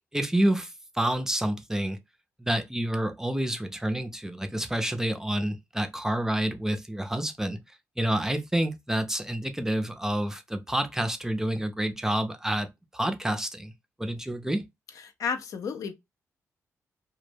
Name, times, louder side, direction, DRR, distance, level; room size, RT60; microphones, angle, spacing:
voice 1, 0.1-2.0 2.4-7.6 8.0-13.7 14.0-14.6, right 1 dB, 10° right, 0.4 m, -28 dB
voice 2, 15.0-15.9, left 6 dB, 75° left, 0.4 m, -32 dB
2.1 x 2.0 x 3.2 m
cardioid pair, 80°, 6 cm